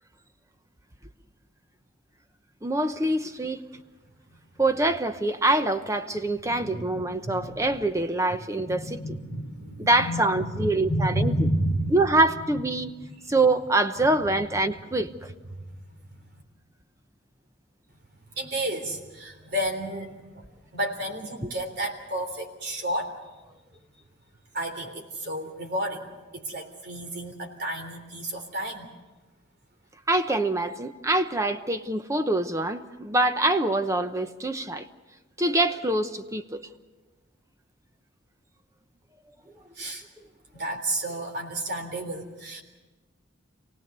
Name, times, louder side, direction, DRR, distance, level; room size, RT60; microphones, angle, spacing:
voice 1, 2.6-3.6 4.6-9.0 9.8-11.3 11.9-12.9 13.3-15.1 30.1-34.8 35.4-36.7, right 2 dB, 15° right, 0.8 m, -25 dB
voice 2, 6.4-7.7 8.6-12.2 12.5-12.9 15.5-15.9 18.3-20.5 20.7-23.1 24.5-28.9 39.8-40.1 40.5-42.6, right 1 dB, 55° right, 3.5 m, -31 dB
27.5 x 18.0 x 6.8 m
head